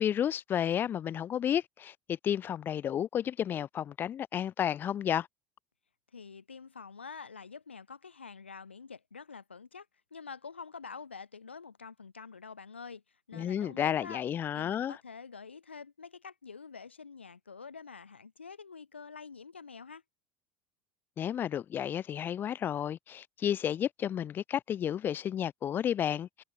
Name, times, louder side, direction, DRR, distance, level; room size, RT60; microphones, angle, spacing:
voice 1, 0.0-5.3 13.3-14.9 21.2-26.4, left 9 dB, 35° left, 3.8 m, -32 dB
voice 2, 6.1-9.9 10.1-14.2 14.5-20.0, left 5 dB, 80° left, 4.5 m, -47 dB
figure-of-eight pair, 70°, 6 cm